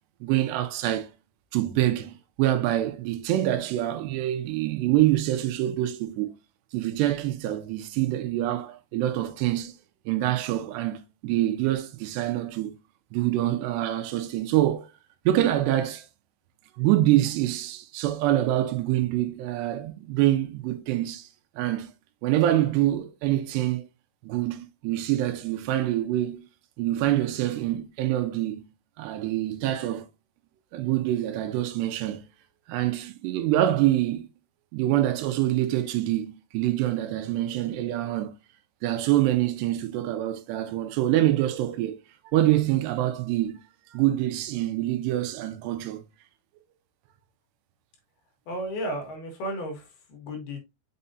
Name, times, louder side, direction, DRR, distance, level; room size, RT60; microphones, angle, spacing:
voice 1, 0.2-1.1 1.5-6.4 6.7-9.8 10.1-12.8 13.1-14.9 15.3-16.1 16.8-21.3 21.6-21.9 22.2-23.9 24.2-26.4 26.8-28.6 29.0-30.1 30.7-32.2 32.7-34.3 34.7-38.3 38.8-42.0 42.3-43.6 43.9-46.0, right 14 dB, 85° right, 2.8 m, -25 dB
voice 2, 48.5-50.6, equal, 70° left, 3.5 m, -34 dB
6.5 x 5.5 x 2.7 m
omnidirectional pair, 4.9 m